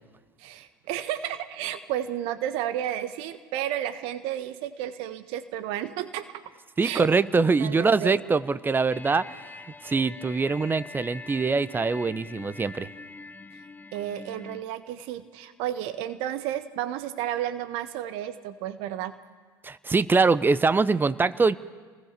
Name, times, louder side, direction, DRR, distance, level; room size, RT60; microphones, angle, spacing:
voice 1, 0.4-6.3 6.8-7.1 7.6-8.2 13.9-19.1, right 11 dB, 55° right, 11 dB, 1.3 m, -32 dB
voice 2, 6.8-9.4 9.8-12.9 19.6-21.6, right 4 dB, 20° right, 16 dB, 0.9 m, -23 dB
sound 1, 8.9-14.6, left 3 dB, 15° left, 0.9 m, -44 dB
28.0 x 21.0 x 6.8 m, 1.5 s
figure-of-eight pair, 70°, 11 cm